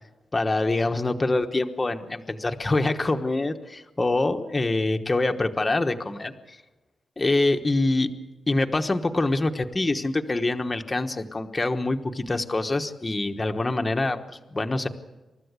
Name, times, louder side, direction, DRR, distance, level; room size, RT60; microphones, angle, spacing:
voice 1, 0.3-6.3 7.2-8.1 8.5-14.9, left 2 dB, 20° left, 6 dB, 1.2 m, -25 dB
28.5 x 14.0 x 8.2 m, 1.1 s
wide cardioid pair, 150°, 0 cm